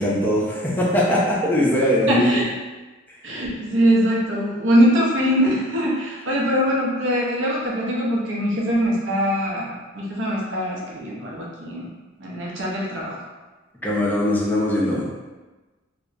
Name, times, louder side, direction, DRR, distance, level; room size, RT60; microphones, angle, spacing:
voice 1, 0.0-2.4 13.8-15.0, left 1 dB, 10° left, -6 dB, 0.5 m, -20 dB
voice 2, 2.1-2.4 3.2-11.9 12.2-13.2, equal, 70° right, -4 dB, 0.6 m, -22 dB
2.7 x 2.1 x 2.5 m, 1.2 s
head